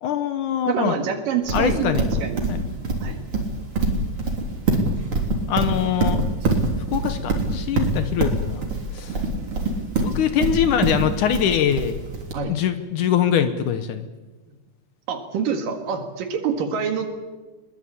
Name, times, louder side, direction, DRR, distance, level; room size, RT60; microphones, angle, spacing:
voice 1, 0.0-1.0 1.5-2.1 2.5-2.6 5.5-6.2 6.9-8.6 8.9-9.2 10.0-12.0 12.5-14.1, left 9 dB, 70° left, 10 dB, 2.4 m, -23 dB
voice 2, 0.7-2.4 3.0-3.2 12.3-12.5 15.1-17.1, right 6 dB, 85° right, 5 dB, 3.5 m, -26 dB
Livestock farm animals working animals, 1.5-12.3, right 3 dB, 40° right, 4.1 m, -23 dB
22.0 x 21.5 x 8.7 m, 1.2 s
omnidirectional pair, 3.8 m